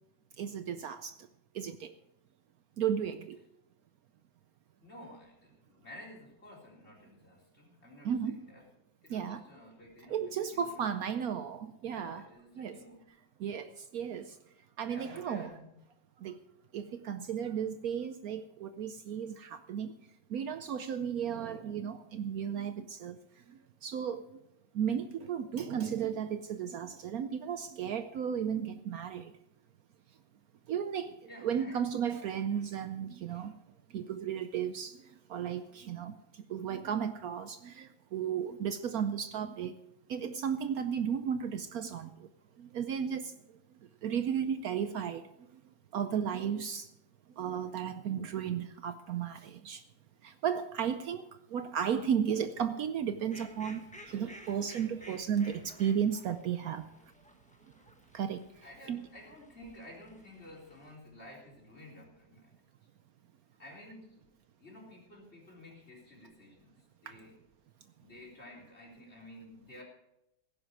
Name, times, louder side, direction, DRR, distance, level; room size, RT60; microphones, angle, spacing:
voice 1, 0.4-1.1 1.5-1.9 2.8-3.4 8.0-8.4 9.1-9.4 10.1-12.3 12.6-12.8 13.4-14.3 14.8-15.5 16.2-16.4 16.7-19.9 20.3-23.2 23.8-24.2 24.7-29.3 30.7-31.2 31.4-33.5 33.9-35.0 35.3-36.2 36.5-39.7 40.1-42.1 42.6-43.3 44.0-45.2 45.9-46.9 47.4-49.8 50.2-53.8 54.1-56.8 58.1-58.5 58.9-59.0, right 8 dB, 70° right, 1.1 m, -34 dB
voice 2, 4.8-8.6 9.0-10.8 11.9-13.1 14.8-15.8 31.2-32.0 58.6-62.5 63.6-64.2 64.6-66.7 67.0-67.3 68.0-69.8, left 1 dB, 40° left, 4.4 m, -52 dB
Fowl, 53.1-60.9, equal, 5° left, 1.1 m, -55 dB
16.5 x 10.0 x 4.7 m
omnidirectional pair, 1.8 m